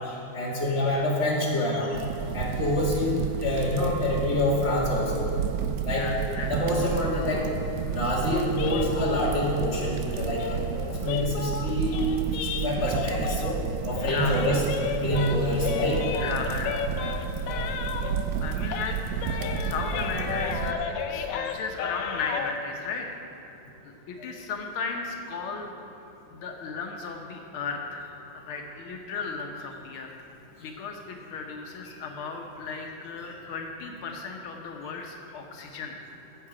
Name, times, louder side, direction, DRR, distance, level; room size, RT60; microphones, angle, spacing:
voice 1, 0.3-2.0 2.3-5.3 5.8-6.1 6.5-7.5 7.9-13.6 13.8-14.6 15.0-16.0, left 1 dB, 30° left, -5 dB, 2.4 m, -26 dB
sound 1, 1.9-20.7, right 7 dB, 85° right, 1.4 m, -31 dB
voice 2, 5.9-6.7 12.9-13.0 14.1-14.4 16.1-16.9 18.4-19.0 19.3-25.7 26.3-28.0 28.3-30.1 30.6-36.0, left 4 dB, 85° left, 2 dB, 1.8 m, -35 dB
sound 2, 8.5-13.6 13.9-18.4 18.7-22.6, left 7 dB, 70° left, 1.2 m, -34 dB
15.0 x 7.8 x 4.9 m, 2.9 s
omnidirectional pair, 2.3 m